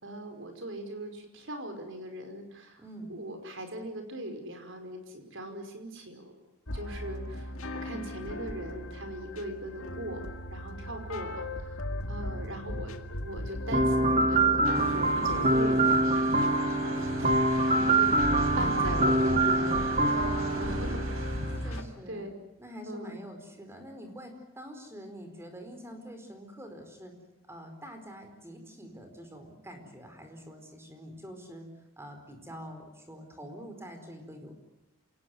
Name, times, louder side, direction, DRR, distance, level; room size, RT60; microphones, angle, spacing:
voice 1, 0.0-2.8 3.1-6.4 6.7-10.2 10.5-11.8 12.1-12.9 13.2-17.4 17.7-18.1 18.6-19.8 20.1-21.1 21.6-21.8 22.1-22.3 22.9-23.1, right 1 dB, 60° right, 6 dB, 5.2 m, -40 dB
voice 2, 2.8-3.1 18.5-20.3 20.8-21.0 21.6-22.3 22.6-27.1 27.5-31.7 32.0-34.5, equal, 10° right, 5 dB, 4.7 m, -45 dB
sound 1, 6.7-21.8, left 1 dB, 75° left, 2.0 m, -37 dB
sound 2, 13.7-21.6, right 2 dB, 35° right, 1.9 m, -25 dB
sound 3, 14.7-21.8, right 2 dB, 80° right, 4.8 m, -41 dB
27.5 x 18.0 x 9.5 m, 1.0 s
head